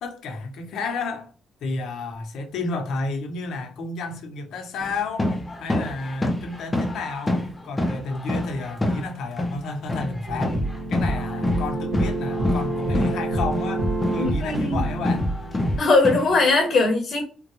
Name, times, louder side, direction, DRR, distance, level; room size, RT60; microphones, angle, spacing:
voice 1, 0.0-1.3 1.6-5.3 5.6-10.6 10.9-13.9 14.1-15.3, left 3 dB, 85° left, 0.8 m, -31 dB
sound 1, 4.8-9.1 9.4-13.2 13.5-16.5, left 1 dB, 15° left, 0.5 m, -27 dB
sound 2, 10.3-15.8, right 1 dB, 75° right, 1.7 m, -27 dB
voice 2, 14.2-14.8 15.8-17.2, left 3 dB, 45° left, 0.8 m, -20 dB
3.7 x 2.2 x 2.9 m
cardioid pair, 160°, 0 cm